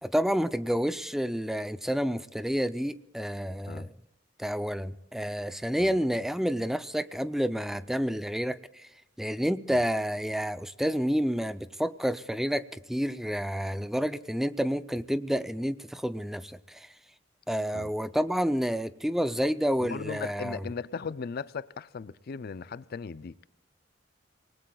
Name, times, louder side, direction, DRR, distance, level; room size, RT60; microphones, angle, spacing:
voice 1, 0.0-3.9 4.4-8.9 9.2-16.9 17.5-20.6, equal, ahead, 0.5 m, -29 dB
voice 2, 19.8-23.3, left 5 dB, 50° left, 0.4 m, -37 dB
27.0 x 20.0 x 2.3 m
head